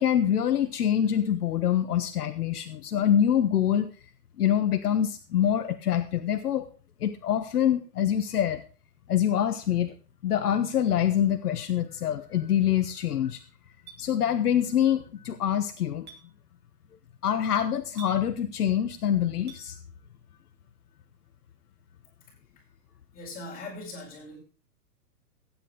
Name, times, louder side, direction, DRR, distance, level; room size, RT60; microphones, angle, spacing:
voice 1, 0.0-3.9 4.4-6.7 7.0-8.6 9.1-9.9 10.2-13.4 14.0-16.1 17.2-19.8, left 10 dB, 70° left, 8 dB, 1.3 m, -25 dB
Chink clink, 13.9-14.0 16.1-16.2 18.0-18.2 19.5-19.6, right 8 dB, 20° right, 2.7 m, -45 dB
voice 2, 23.1-24.4, left 2 dB, 20° left, -4 dB, 8.0 m, -40 dB
15.0 x 10.0 x 3.8 m, 0.35 s
hypercardioid pair, 135°, 48 cm